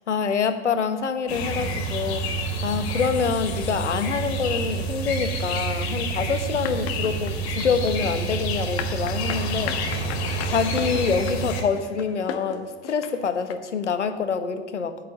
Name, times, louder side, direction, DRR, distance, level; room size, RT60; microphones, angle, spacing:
voice 1, 0.1-2.2 2.6-9.8 10.4-15.0, left 5 dB, 85° left, 10 dB, 1.1 m, -26 dB
sound 1, 1.3-11.6, right 2 dB, 65° left, 2.6 m, -28 dB
sound 2, 6.6-13.5, left 9 dB, 45° left, 1.4 m, -36 dB
9.3 x 9.2 x 7.3 m, 1.4 s
figure-of-eight pair, 80°, 34 cm